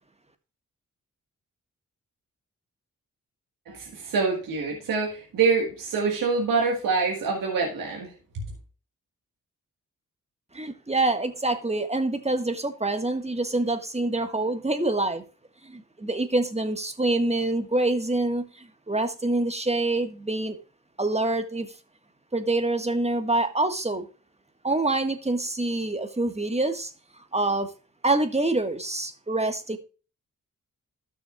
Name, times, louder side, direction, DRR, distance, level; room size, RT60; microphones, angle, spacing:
voice 1, 3.7-8.4, right 4 dB, 85° right, 1.8 m, -26 dB
voice 2, 10.5-15.2 15.6-20.6 21.0-21.7 22.3-24.1 24.6-26.9 27.3-27.7 28.0-29.8, right 2 dB, 20° right, 1.6 m, -26 dB
12.5 x 6.5 x 2.4 m
supercardioid pair, 45°, 33 cm